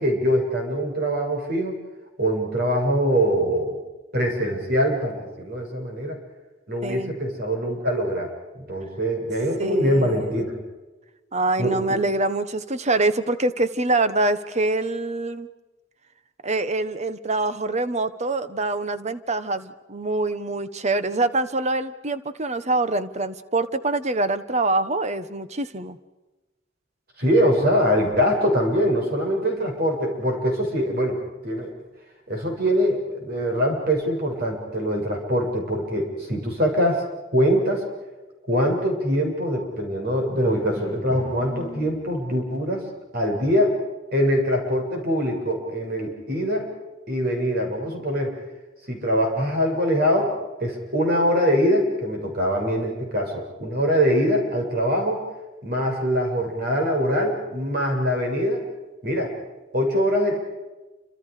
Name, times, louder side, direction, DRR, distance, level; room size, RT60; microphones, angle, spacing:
voice 1, 0.0-1.7 2.2-3.8 4.1-6.2 6.7-8.3 8.7-10.5 11.6-12.0 27.2-31.2 31.4-31.7 32.3-37.0 37.3-37.8 38.5-42.9 43.1-43.8 44.1-46.7 47.1-48.4 48.9-50.3 50.6-55.2 55.6-58.6 59.0-59.3 59.7-60.4, equal, 50° right, 2 dB, 7.1 m, -23 dB
voice 2, 6.8-7.1 9.6-10.5 11.3-15.5 16.4-26.0, right 2 dB, 35° right, 12 dB, 1.2 m, -25 dB
Drum, 40.4-42.5, equal, 20° left, 2.2 m, -38 dB
29.5 x 27.0 x 5.0 m, 1.1 s
head